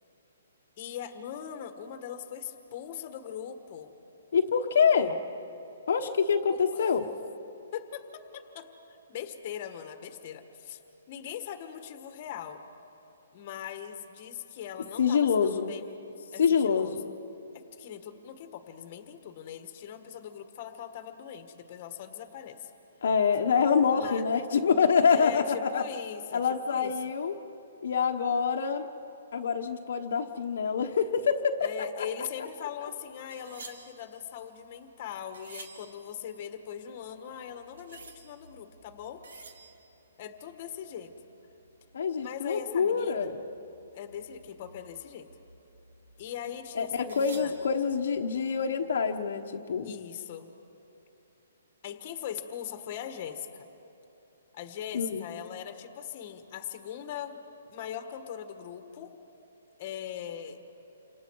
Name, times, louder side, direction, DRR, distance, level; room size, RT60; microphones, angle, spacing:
voice 1, 0.8-3.9 6.5-6.9 7.7-10.8 11.1-12.6 13.3-15.9 16.3-17.0 17.5-22.7 23.9-24.2 25.1-26.9 31.6-39.2 40.2-41.1 42.2-43.3 43.9-45.3 46.2-47.5 49.8-50.5 51.8-53.7 54.5-57.4 57.7-59.1 59.8-60.6, left 9 dB, 30° left, 8 dB, 1.5 m, -40 dB
voice 2, 4.3-5.2 5.9-7.1 15.0-15.7 16.4-17.0 23.0-25.8 26.3-27.3 27.8-28.9 29.3-31.7 32.0-32.1 41.9-43.4 46.8-49.9 54.9-55.3, left 6 dB, 60° left, 4 dB, 1.2 m, -26 dB
sound 1, 32.5-48.5, right 3 dB, 85° right, 2.7 m, -53 dB
29.0 x 26.5 x 4.7 m, 3.0 s
hypercardioid pair, 170°, 0 cm